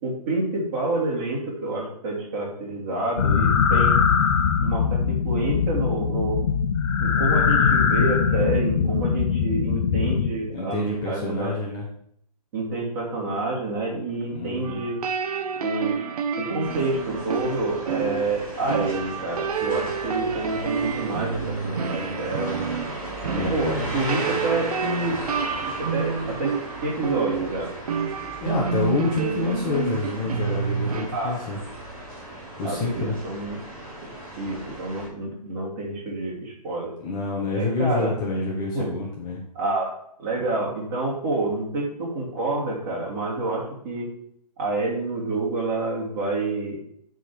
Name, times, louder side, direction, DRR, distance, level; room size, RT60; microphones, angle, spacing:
voice 1, 0.0-4.0 4.6-6.4 7.0-11.5 12.5-15.0 15.6-16.0 16.4-22.6 23.3-25.2 25.7-26.5 26.8-27.7 31.1-31.4 32.6-33.6 34.0-34.1 34.4-36.9 37.5-38.1 38.7-38.9 39.5-39.9 40.2-44.1 44.6-46.8, right 2 dB, 30° right, -5 dB, 2.8 m, -28 dB
sound 1, 3.2-10.3, left 6 dB, 40° left, 0.7 m, -21 dB
voice 2, 10.5-11.9 14.3-14.8 23.3-23.9 28.4-31.6 32.6-33.2 37.0-39.4, left 3 dB, 20° left, -4 dB, 1.1 m, -27 dB
sound 2, 14.6-31.1, right 6 dB, 65° right, 0.9 m, -29 dB
sound 3, 16.6-35.1, right 1 dB, 10° right, 3.5 m, -36 dB
9.8 x 4.0 x 4.7 m, 0.70 s
hypercardioid pair, 155°, 21 cm